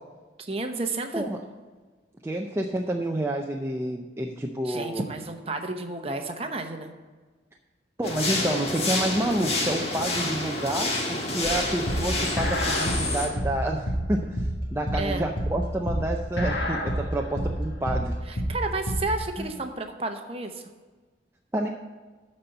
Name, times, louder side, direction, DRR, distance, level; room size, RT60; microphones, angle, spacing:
voice 1, 0.4-1.2 4.6-6.9 15.0-15.2 18.3-20.6, right 2 dB, 30° right, 5 dB, 0.9 m, -31 dB
voice 2, 2.2-5.0 8.0-18.2 19.4-19.6 21.5-21.7, right 1 dB, 15° right, 0 dB, 0.5 m, -29 dB
sound 1, 8.0-13.3, left 2 dB, 35° left, 1.5 m, -28 dB
sound 2, 11.4-19.2, equal, 70° left, 1.6 m, -28 dB
12.0 x 4.3 x 7.8 m, 1.4 s
head